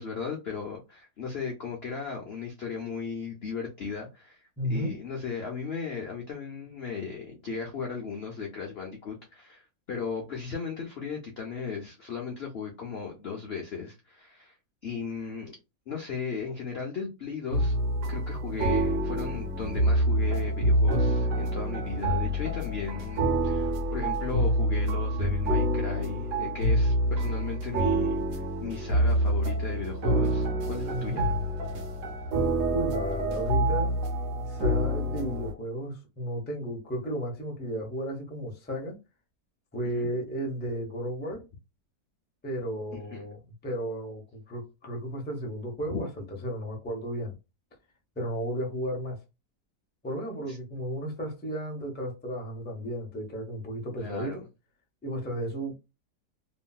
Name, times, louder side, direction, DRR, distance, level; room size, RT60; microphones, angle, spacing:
voice 1, 0.0-14.5 14.8-15.6 15.9-17.8 18.1-31.3 39.9-40.1 42.9-43.2 45.9-46.0 50.5-50.6 54.0-54.4, left 5 dB, 65° left, 0.6 m, -36 dB
voice 2, 4.6-4.9 30.9-31.3 32.7-33.9 34.4-39.0 39.7-41.4 42.4-46.1 46.4-47.3 48.2-49.2 50.0-54.4 55.0-55.7, equal, 10° left, 0.4 m, -34 dB
sound 1, 17.5-35.5, right 1 dB, 65° right, 1.3 m, -27 dB
3.0 x 2.6 x 2.3 m
omnidirectional pair, 2.0 m